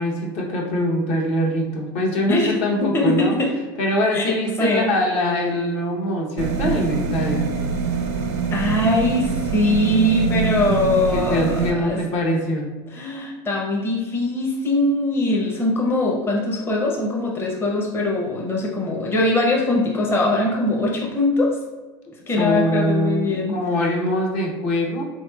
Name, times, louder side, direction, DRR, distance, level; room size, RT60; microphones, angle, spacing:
voice 1, 0.0-3.3 3.8-7.5 11.1-12.7 22.4-25.0, left 1 dB, 55° left, -1 dB, 0.8 m, -23 dB
voice 2, 2.9-3.5 4.1-4.9 8.5-12.0 12.9-21.6 22.3-23.6, left 1 dB, 15° left, -2 dB, 0.6 m, -21 dB
sound 1, 6.4-11.7, right 5 dB, 75° right, 0.5 m, -24 dB
3.5 x 2.9 x 2.2 m, 1.3 s
supercardioid pair, 105°, 14 cm